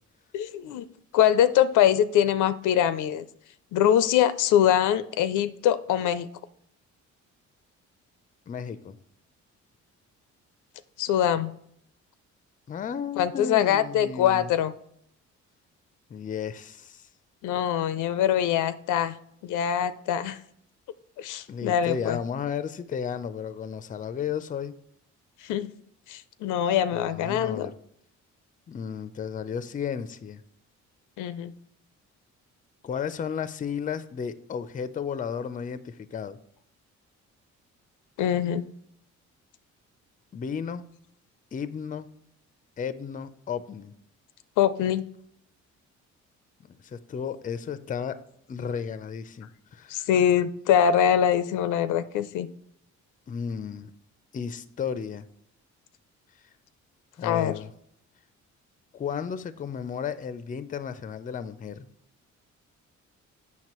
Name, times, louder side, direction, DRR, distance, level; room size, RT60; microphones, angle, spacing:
voice 1, 0.3-0.9 1.1-3.3 3.7-6.3 11.0-11.5 13.2-14.7 17.4-19.2 19.4-20.4 21.2-22.2 25.4-25.7 26.1-27.7 31.2-31.5 38.2-38.6 44.6-45.0 49.9-52.5 57.2-57.5, left 10 dB, 80° left, 14 dB, 0.5 m, -23 dB
voice 2, 8.5-9.0 12.7-14.5 16.1-17.1 21.5-24.7 26.9-27.7 28.7-30.4 32.8-36.4 40.3-40.9 41.5-42.1 42.8-43.9 46.6-48.2 48.5-50.1 53.3-53.9 54.3-55.2 57.2-57.7 58.9-61.9, left 7 dB, 25° left, 14 dB, 0.4 m, -33 dB
7.5 x 5.8 x 3.0 m, 0.71 s
cardioid pair, 90°, 30 cm